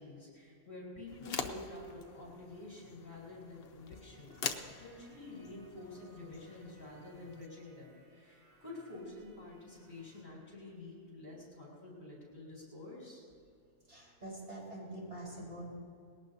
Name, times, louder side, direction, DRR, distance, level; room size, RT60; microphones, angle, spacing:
voice 1, 0.0-4.4 4.8-13.2, left 2 dB, 30° left, -4 dB, 4.5 m, -49 dB
sound 1, 1.1-7.5, left 6 dB, 50° left, 0.9 m, -45 dB
sound 2, 3.9-10.2, right 1 dB, 75° right, 3.9 m, -66 dB
voice 2, 13.9-15.6, right 1 dB, 40° right, -6 dB, 4.9 m, -45 dB
20.0 x 18.0 x 2.8 m, 2.4 s
omnidirectional pair, 1.7 m